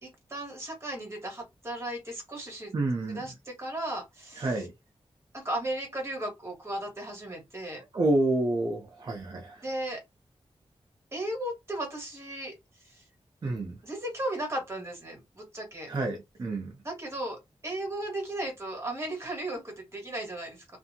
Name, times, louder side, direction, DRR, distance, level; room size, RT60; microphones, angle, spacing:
voice 1, 0.0-2.7 3.1-4.7 5.3-7.8 9.6-10.0 11.1-12.5 12.8-13.0 13.8-15.9 16.8-20.8, right 1 dB, 25° right, 1.5 m, -36 dB
voice 2, 2.7-3.3 4.4-4.7 7.9-9.6 13.4-13.8 15.9-16.7, right 2 dB, 40° right, 0.6 m, -29 dB
2.7 x 2.5 x 2.7 m
wide cardioid pair, 140°, 11 cm